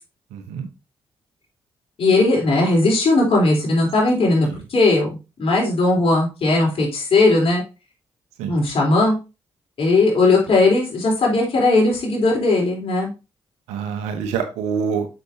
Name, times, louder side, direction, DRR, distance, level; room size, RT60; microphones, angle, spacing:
voice 1, 0.3-0.7 4.5-4.6 8.4-8.5 13.7-15.1, right 6 dB, 90° right, 7 dB, 1.1 m, -26 dB
voice 2, 2.0-7.6 8.5-9.2 9.8-13.1, left 2 dB, 60° left, -2 dB, 3.9 m, -18 dB
6.9 x 6.1 x 2.8 m, 0.29 s
supercardioid pair, 45°, 11 cm